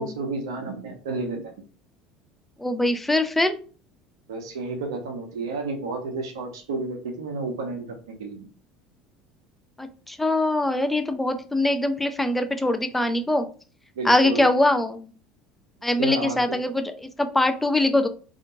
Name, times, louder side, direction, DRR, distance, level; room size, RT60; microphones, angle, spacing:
voice 1, 0.0-1.5 4.3-8.5 14.0-14.5 16.0-16.4, right 3 dB, 65° right, 4 dB, 0.6 m, -31 dB
voice 2, 2.6-3.6 9.8-13.5 14.0-15.1 15.8-18.1, left 1 dB, 5° left, 8 dB, 0.4 m, -23 dB
2.5 x 2.4 x 2.7 m, 0.39 s
figure-of-eight pair, 65°, 3 cm